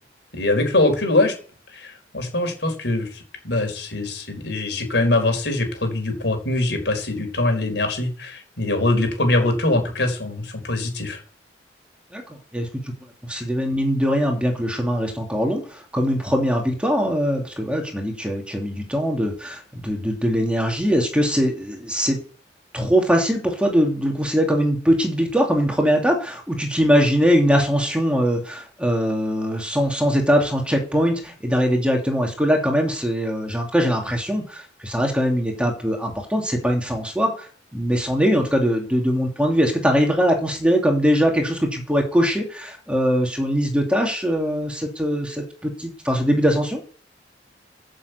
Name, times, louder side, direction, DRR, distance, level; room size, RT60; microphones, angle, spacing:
voice 1, 0.3-1.3 1.7-11.2, left 2 dB, 70° left, 4 dB, 4.5 m, -23 dB
voice 2, 13.2-22.2 22.7-46.8, equal, 5° right, 1 dB, 2.4 m, -21 dB
14.0 x 7.1 x 8.1 m, 0.44 s
head